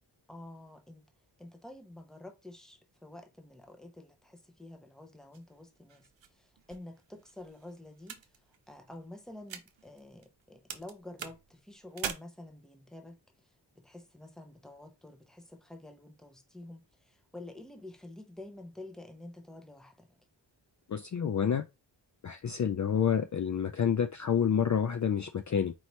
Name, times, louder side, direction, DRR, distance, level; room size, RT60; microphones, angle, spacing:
voice 1, 0.3-1.1 1.4-6.1 6.3-8.2 8.7-13.2 13.7-20.2, left 1 dB, ahead, 0.8 m, -49 dB
sound 1, 5.3-10.4 10.7-12.1, right 8 dB, 90° right, 0.7 m, -44 dB
voice 2, 20.9-21.6 22.2-25.7, left 8 dB, 45° left, 0.4 m, -28 dB
4.5 x 2.7 x 3.1 m
wide cardioid pair, 65°, 44 cm